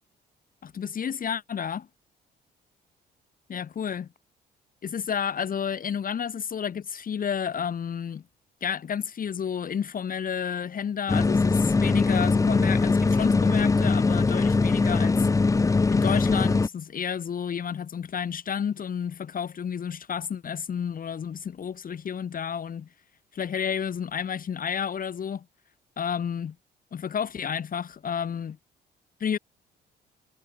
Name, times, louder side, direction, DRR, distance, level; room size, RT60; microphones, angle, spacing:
voice 1, 0.6-1.9 3.5-4.1 4.8-8.2 8.6-15.3 15.9-22.9 23.3-25.4 26.0-26.5 26.9-28.6 29.2-29.4, left 7 dB, 50° left, 2.1 m, -31 dB
sound 1, 11.1-16.7, left 3 dB, 15° left, 0.5 m, -22 dB
cardioid pair, 80°, 19 cm